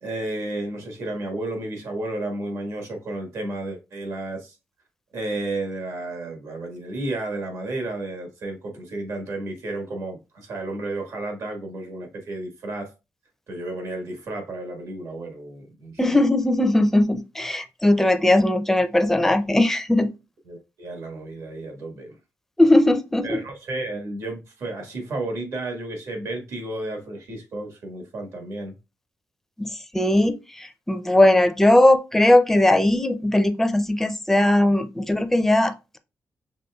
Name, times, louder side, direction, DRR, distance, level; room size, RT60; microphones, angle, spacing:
voice 1, 0.0-4.6 5.1-12.9 13.5-16.2 20.5-22.2 23.2-28.8, right 2 dB, 70° right, 1.4 m, -32 dB
voice 2, 16.0-20.1 22.6-23.4 29.6-36.0, left 1 dB, 5° left, 0.4 m, -19 dB
5.5 x 3.3 x 2.3 m
wide cardioid pair, 140°, 5 cm